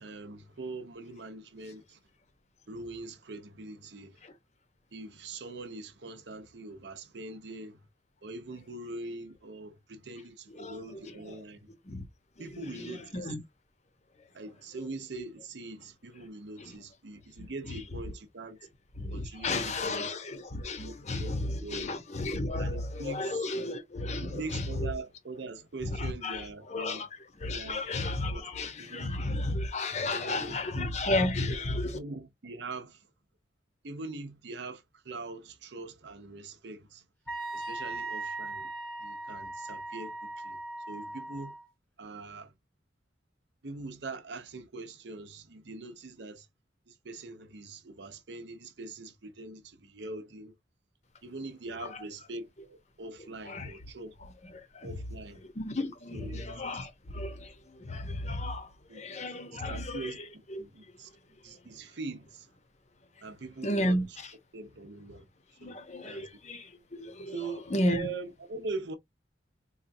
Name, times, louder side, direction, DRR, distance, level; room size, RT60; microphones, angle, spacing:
voice 1, 0.0-2.0 2.7-4.2 4.9-7.8 8.2-11.6 12.4-13.3 14.3-18.6 19.1-20.1 20.8-21.3 21.6-21.9 22.6-23.4 24.2-27.1 27.5-27.9 28.3-29.5 30.0-31.2 31.9-33.0 33.8-37.0 37.5-38.7 39.0-40.6 40.9-41.6 42.0-42.5 43.6-46.5 46.9-50.5 51.2-54.2 54.8-55.4 56.1-56.4 58.9-59.0 59.5-60.2 60.6-61.1 61.4-62.5 63.2-64.0 64.5-65.3 65.6-66.3 67.3-69.0, right 3 dB, 70° right, 0.7 m, -42 dB
voice 2, 10.5-11.3 11.9-12.0 12.5-13.4 16.6-16.8 17.4-17.5 19.0-24.9 25.8-27.1 27.4-32.0 51.9-52.0 53.4-53.7 54.5-54.9 55.4-57.5 57.8-60.1 60.5-60.6 63.6-64.3 65.6-68.1, left 2 dB, 40° left, 0.8 m, -33 dB
Wind instrument woodwind instrument, 37.3-41.7, right 2 dB, 5° left, 0.9 m, -39 dB
4.1 x 2.3 x 2.6 m
head